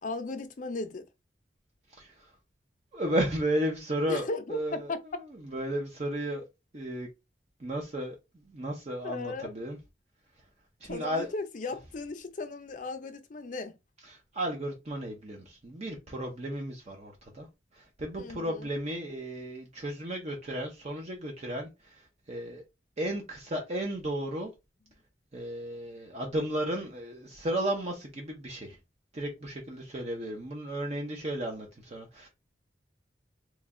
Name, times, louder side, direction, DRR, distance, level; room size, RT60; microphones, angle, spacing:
voice 1, 0.0-1.0 4.1-5.0 9.0-9.6 10.8-13.8 18.2-18.7, left 3 dB, 45° left, 0.5 m, -36 dB
voice 2, 2.9-4.9 5.5-6.4 6.7-7.1 7.6-8.2 8.5-9.8 10.8-11.3 14.1-17.5 17.7-21.9 22.3-22.6 23.0-24.5 25.3-28.8 29.1-32.3, right 1 dB, 40° right, 0.6 m, -34 dB
3.1 x 2.2 x 3.6 m
head